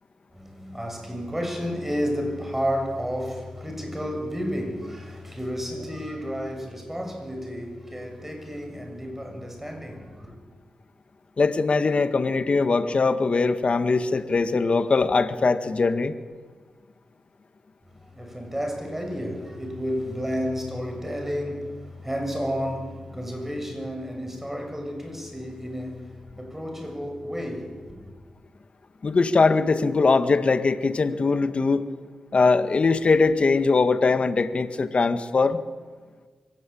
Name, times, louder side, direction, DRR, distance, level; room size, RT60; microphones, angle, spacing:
voice 1, 0.3-10.3 18.1-26.1 26.4-28.1, equal, 10° right, 6.9 m, -31 dB
voice 2, 11.4-16.1 29.0-31.8 32.3-35.6, left 4 dB, 50° left, 1.7 m, -21 dB
24.5 x 17.5 x 8.7 m
cardioid pair, 65°, 3 cm